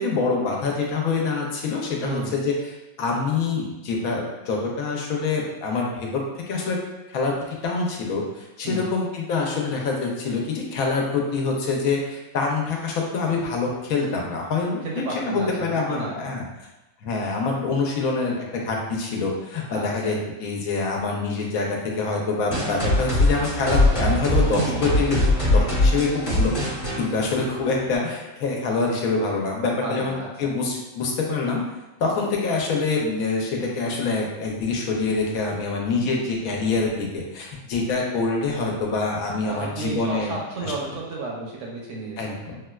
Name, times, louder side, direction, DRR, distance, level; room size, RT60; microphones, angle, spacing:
voice 1, 0.0-2.5 3.0-6.8 7.1-16.5 17.0-26.5 27.0-31.6 32.0-40.3 42.2-42.6, left 4 dB, 75° left, -1 dB, 1.1 m, -25 dB
voice 2, 2.0-2.3 8.6-8.9 14.8-16.4 19.7-20.1 24.6-24.8 29.8-30.5 39.5-42.4, right 3 dB, 65° right, -2 dB, 0.8 m, -32 dB
sound 1, 22.5-28.0, left 1 dB, 40° left, 1.1 m, -22 dB
4.1 x 2.2 x 2.2 m, 1.0 s
omnidirectional pair, 1.5 m